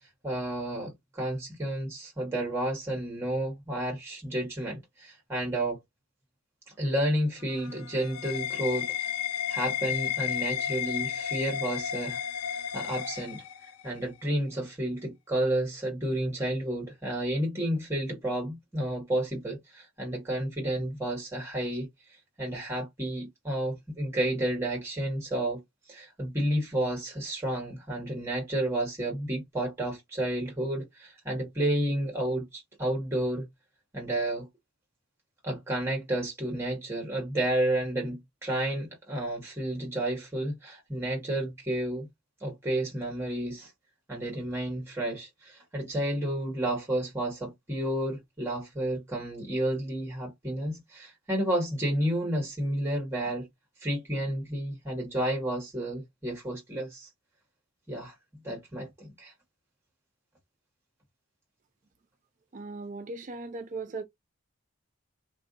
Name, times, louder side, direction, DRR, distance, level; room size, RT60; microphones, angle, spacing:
voice 1, 0.2-5.8 6.8-9.1 9.5-12.2 12.7-13.4 13.8-21.9 22.4-25.6 25.9-33.5 33.9-34.5 35.4-42.1 42.4-43.7 44.1-53.5 53.8-57.1 57.9-59.3, right 1 dB, 10° right, 1.2 m, -31 dB
sound 1, 7.4-13.9, left 9 dB, 90° left, 0.4 m, -33 dB
voice 2, 62.5-64.0, right 3 dB, 35° right, 0.4 m, -38 dB
3.6 x 2.6 x 2.5 m
head